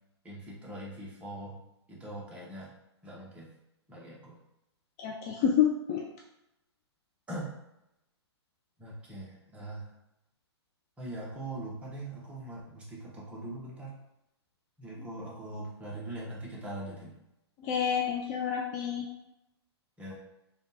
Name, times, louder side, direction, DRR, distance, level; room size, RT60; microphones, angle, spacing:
voice 1, 0.2-1.6 1.9-2.7 3.0-3.5 3.9-4.4 7.3-7.5 8.8-9.9 11.0-14.0 14.8-17.2 20.0-20.1, right 1 dB, 10° right, -5 dB, 0.8 m, -41 dB
voice 2, 5.0-6.0 17.6-19.1, left 8 dB, 30° left, -1 dB, 0.4 m, -28 dB
3.5 x 2.2 x 2.7 m, 0.87 s
hypercardioid pair, 130°, 14 cm